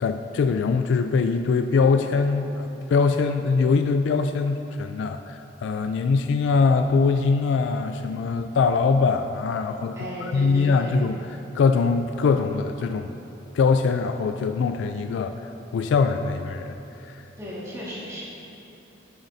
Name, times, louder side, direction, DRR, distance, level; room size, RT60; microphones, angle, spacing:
voice 1, 0.0-11.2 11.5-13.1 13.5-16.7 17.0-17.2, left 4 dB, 85° left, 7 dB, 0.3 m, -22 dB
voice 2, 9.9-11.0 17.4-18.2, equal, 15° right, -9 dB, 1.8 m, -35 dB
10.5 x 7.2 x 2.7 m, 3.0 s
head